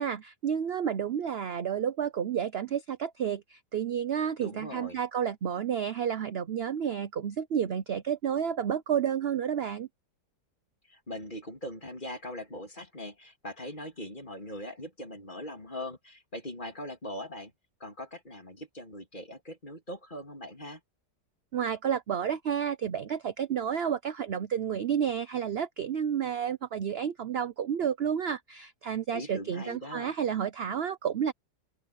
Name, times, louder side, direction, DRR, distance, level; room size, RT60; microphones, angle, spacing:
voice 1, 0.0-9.9 21.5-31.3, right 8 dB, 60° right, 0.7 m, -30 dB
voice 2, 4.4-5.0 10.9-17.5 17.8-20.8 29.1-30.1, left 1 dB, 30° left, 3.2 m, -41 dB
open air
omnidirectional pair, 1.8 m